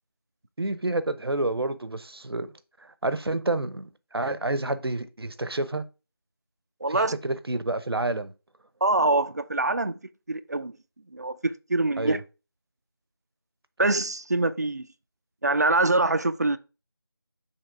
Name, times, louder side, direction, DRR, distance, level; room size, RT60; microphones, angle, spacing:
voice 1, 0.6-2.5 2.8-5.8 6.9-8.3 12.0-12.2, right 2 dB, 75° right, 0.8 m, -29 dB
voice 2, 6.8-7.1 8.8-10.0 10.3-10.7 11.1-12.2 13.8-14.9 15.4-16.6, right 2 dB, 45° right, 0.4 m, -24 dB
6.7 x 3.1 x 4.5 m
figure-of-eight pair, 170°, 13 cm